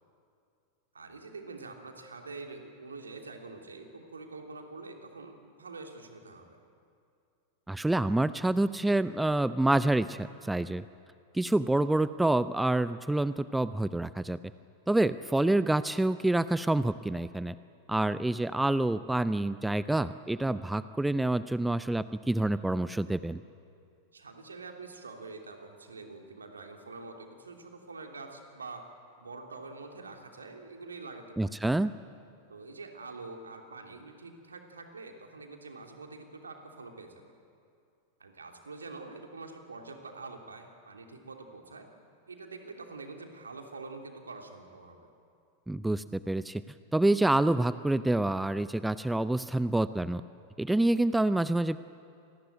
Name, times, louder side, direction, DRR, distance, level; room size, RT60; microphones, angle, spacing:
voice 1, 0.9-6.6 15.1-15.2 24.1-28.8 29.2-31.5 32.5-37.3 38.2-41.9 42.3-45.0, right 3 dB, 75° right, 3 dB, 3.1 m, -45 dB
voice 2, 7.7-10.8 11.3-14.4 14.9-17.5 17.9-23.4 31.4-31.9 45.7-46.6 46.9-50.2 50.6-51.8, right 2 dB, 5° right, 15 dB, 0.5 m, -27 dB
26.5 x 19.5 x 9.0 m, 2.4 s
figure-of-eight pair, 90°, 0 cm